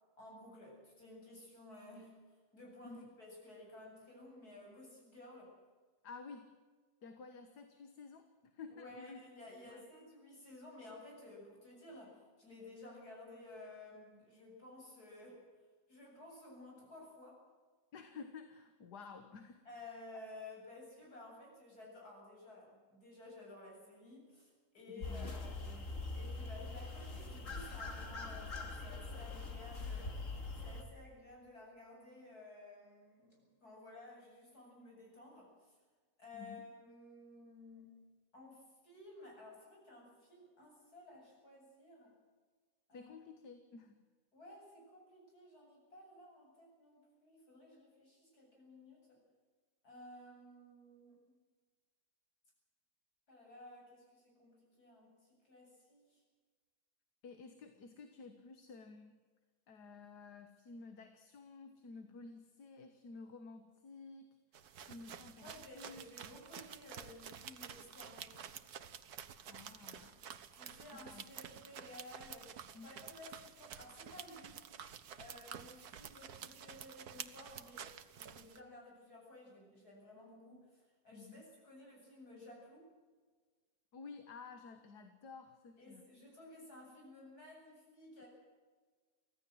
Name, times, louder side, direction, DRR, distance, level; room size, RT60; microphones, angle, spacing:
voice 1, 0.2-5.5 8.7-15.5 15.9-17.4 19.7-30.2 30.6-35.8 36.2-38.0 38.3-42.1 42.9-43.1 44.3-49.2 49.8-51.2 53.3-56.2 65.4-68.4 70.5-72.6 72.8-74.6 75.2-77.9 78.2-82.9 85.8-88.3, left 2 dB, 70° left, -1 dB, 8.6 m, -55 dB
voice 2, 6.0-6.5 7.0-9.2 9.7-9.8 17.9-20.0 24.9-25.5 36.3-36.6 42.9-44.0 57.2-59.2 59.7-64.4 64.8-66.0 69.5-70.2 70.9-71.3 71.6-71.7 72.7-72.9 81.1-81.5 83.9-86.1, left 4 dB, 90° left, 7 dB, 2.0 m, -52 dB
sound 1, 25.0-30.8, left 3 dB, 50° left, 3.2 m, -43 dB
sound 2, 64.5-78.6, right 8 dB, 75° right, 1.6 m, -50 dB
24.5 x 16.0 x 7.9 m, 1.4 s
omnidirectional pair, 1.7 m